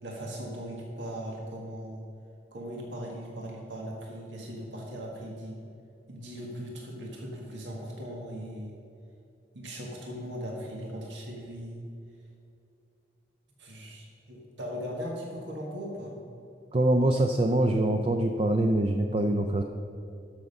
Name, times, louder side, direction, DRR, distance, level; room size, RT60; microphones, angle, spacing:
voice 1, 0.0-2.0 2.5-5.6 6.1-8.8 9.5-11.8 13.6-16.2, equal, 85° right, -1 dB, 1.8 m, -39 dB
voice 2, 16.7-19.6, right 1 dB, 35° right, 5 dB, 0.5 m, -24 dB
13.0 x 6.5 x 5.4 m, 2.6 s
head